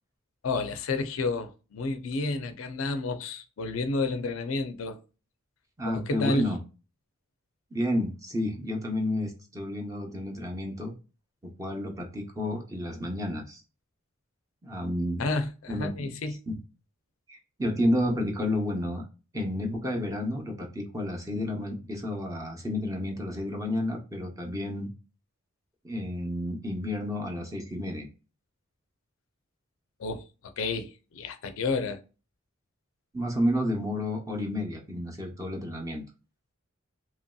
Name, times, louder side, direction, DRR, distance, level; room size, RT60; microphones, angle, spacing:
voice 1, 0.4-5.0 5.8-6.5 15.2-16.4 30.0-32.0, left 3 dB, 75° left, 0.4 m, -31 dB
voice 2, 5.8-6.6 7.7-10.9 11.4-13.6 14.6-15.3 15.7-16.2 16.5-16.6 17.3-19.0 19.3-24.9 25.8-28.1 33.1-36.0, left 1 dB, 15° right, 0.7 m, -31 dB
3.0 x 2.6 x 2.2 m
head